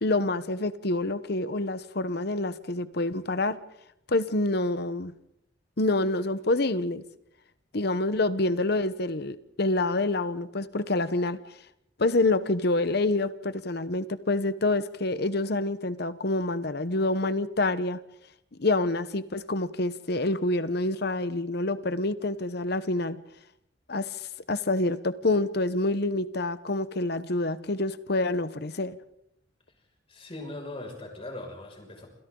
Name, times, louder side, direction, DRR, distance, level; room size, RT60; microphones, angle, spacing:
voice 1, 0.0-3.6 4.1-5.1 5.8-7.0 7.7-11.4 12.0-18.0 18.6-23.2 23.9-29.0, left 2 dB, 55° left, 13 dB, 1.0 m, -27 dB
voice 2, 30.1-32.1, left 2 dB, 30° left, 2 dB, 6.3 m, -40 dB
28.5 x 27.5 x 3.9 m, 0.77 s
head